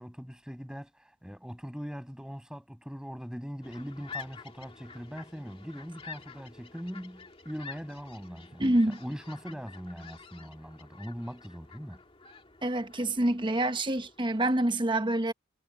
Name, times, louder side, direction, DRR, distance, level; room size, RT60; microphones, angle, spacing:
voice 1, 0.0-12.0, equal, 5° right, 6.8 m, -41 dB
sound 1, 3.6-14.4, left 5 dB, 30° left, 2.1 m, -49 dB
voice 2, 8.6-9.0 12.6-15.3, right 1 dB, 25° right, 1.1 m, -27 dB
head